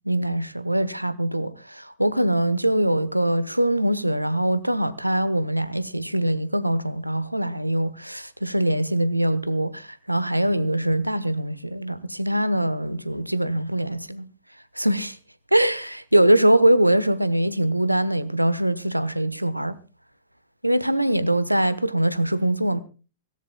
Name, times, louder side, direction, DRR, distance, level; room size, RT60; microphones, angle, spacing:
voice 1, 0.1-14.3 14.8-15.2 15.5-19.8 20.6-22.8, right 1 dB, 90° right, 1.0 m, -22 dB
24.0 x 17.5 x 2.3 m
figure-of-eight pair, 100°, 0 cm